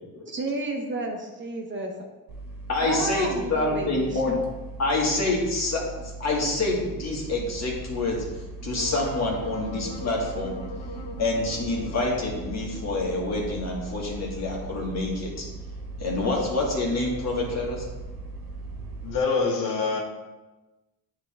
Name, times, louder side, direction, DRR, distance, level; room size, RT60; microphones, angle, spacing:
voice 1, 0.3-1.9 2.8-4.5, right 2 dB, 35° right, 1.1 m, -31 dB
sound 1, 2.3-19.2, right 3 dB, 80° right, 1.3 m, -39 dB
voice 2, 2.7-4.3 4.8-8.2 8.6-10.6 11.2-15.3 16.0-17.8, left 2 dB, 50° left, 2.0 m, -27 dB
Wind instrument woodwind instrument, 8.7-13.8, left 1 dB, 20° left, 1.4 m, -40 dB
voice 3, 19.0-20.0, left 4 dB, 70° left, 1.1 m, -25 dB
9.4 x 3.7 x 3.7 m
cardioid pair, 110°, 34 cm